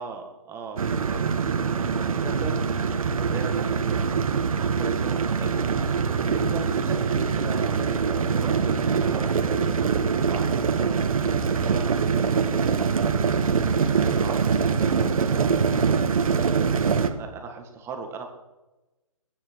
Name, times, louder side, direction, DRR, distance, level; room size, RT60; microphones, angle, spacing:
voice 1, 0.0-3.0 3.3-4.1 4.6-9.9 10.2-15.6 16.7-18.3, right 5 dB, 15° right, 4 dB, 1.9 m, -38 dB
sound 1, 0.8-17.1, right 6 dB, 75° right, 1.5 m, -24 dB
20.5 x 9.8 x 4.7 m, 1.1 s
hypercardioid pair, 150°, 18 cm